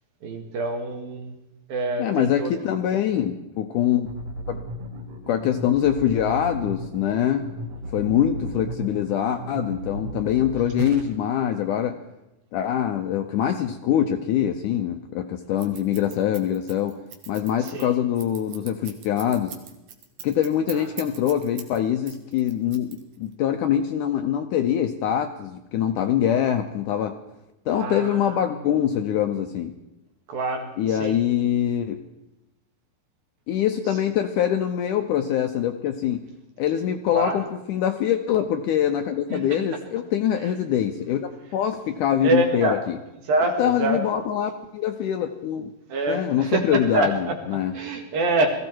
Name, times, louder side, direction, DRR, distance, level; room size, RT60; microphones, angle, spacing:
voice 1, 0.2-1.4 1.7-2.5 17.6-17.9 20.7-20.9 27.7-28.4 30.3-30.7 31.0-31.2 37.1-37.5 39.3-39.6 40.4-40.5 42.2-42.8 43.3-44.0 45.9-47.4 47.7-48.5, right 2 dB, 70° right, 3 dB, 3.6 m, -26 dB
voice 2, 2.0-4.1 4.5-4.7 5.3-7.5 7.9-11.9 12.5-17.0 17.3-19.6 20.2-27.2 27.7-29.7 30.8-32.0 33.5-36.2 36.6-43.0 43.4-45.7 46.1-47.8, left 10 dB, 75° left, 6 dB, 1.9 m, -24 dB
sound 1, 4.0-11.0, right 1 dB, 55° right, 2.2 m, -34 dB
Scissors, 15.6-21.8 22.1-23.3, right 9 dB, 90° right, 3.5 m, -41 dB
20.0 x 15.0 x 4.6 m, 0.92 s
omnidirectional pair, 4.3 m